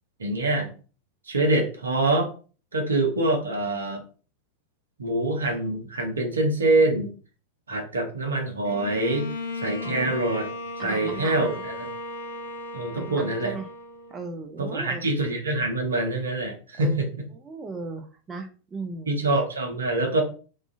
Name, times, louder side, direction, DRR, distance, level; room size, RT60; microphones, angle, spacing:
voice 1, 0.2-0.7 1.3-2.3 2.7-4.0 5.0-7.1 7.7-9.3 9.5-10.5 10.8-11.7 12.7-13.6 14.6-17.1 19.1-20.2, right 2 dB, 70° right, 2 dB, 0.7 m, -25 dB
Bowed string instrument, 8.6-14.4, left 2 dB, 65° left, 0.5 m, -36 dB
voice 2, 9.8-10.2 10.8-11.6 13.0-13.7 14.1-15.0 16.8-17.0 17.3-19.1, right 3 dB, 20° right, 4 dB, 0.3 m, -37 dB
2.4 x 2.3 x 2.6 m, 0.37 s
figure-of-eight pair, 90°, 0 cm